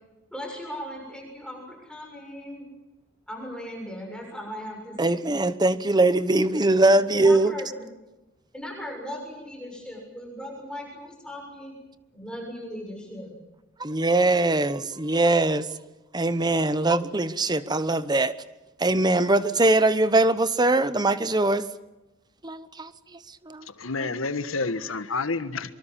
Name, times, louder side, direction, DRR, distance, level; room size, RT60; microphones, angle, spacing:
voice 1, 0.3-2.7 3.3-5.3 6.5-7.8 8.5-11.7 12.1-13.3, equal, 5° left, 6.8 m, -38 dB
voice 2, 5.0-7.5 13.8-15.7 16.1-18.3 18.8-21.7 22.4-23.7, right 2 dB, 20° right, 1.0 m, -22 dB
voice 3, 23.6-25.7, left 3 dB, 80° left, 1.5 m, -29 dB
25.0 x 23.5 x 7.5 m
head